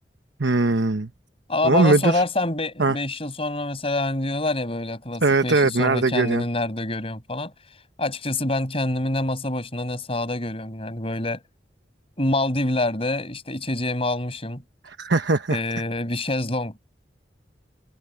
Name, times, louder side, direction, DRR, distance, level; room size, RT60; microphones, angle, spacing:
voice 1, 0.4-1.1 1.6-2.2 2.8-3.0 5.2-6.4 14.9-15.6, right 3 dB, 80° right, 1.1 m, -20 dB
voice 2, 1.5-7.5 8.0-11.4 12.2-14.6 15.5-16.8, left 2 dB, 35° left, 6.4 m, -26 dB
head